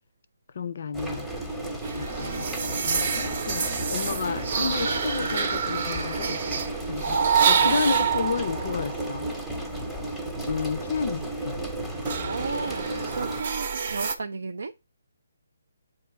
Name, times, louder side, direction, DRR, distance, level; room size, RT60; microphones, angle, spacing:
voice 1, 0.5-1.3 2.0-6.4 6.9-9.3 10.5-11.6, left 5 dB, 50° left, 0.4 m, -31 dB
sound 1, 0.9-13.4, right 1 dB, ahead, 0.8 m, -33 dB
sound 2, 1.8-9.8 10.2-14.2, right 6 dB, 45° right, 0.7 m, -28 dB
voice 2, 12.3-14.7, right 4 dB, 75° right, 0.4 m, -33 dB
7.0 x 2.6 x 5.6 m
hypercardioid pair, 165°, 0 cm